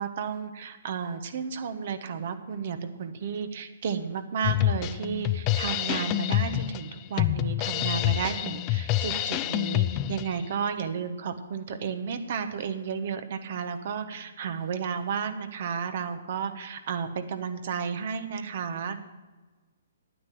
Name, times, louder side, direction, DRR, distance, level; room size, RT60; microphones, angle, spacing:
voice 1, 0.0-19.0, right 6 dB, 55° right, 9 dB, 1.2 m, -32 dB
Drum kit, 4.4-10.4, left 14 dB, 30° left, 0.4 m, -27 dB
9.3 x 9.3 x 7.5 m, 1.3 s
hypercardioid pair, 130°, 0 cm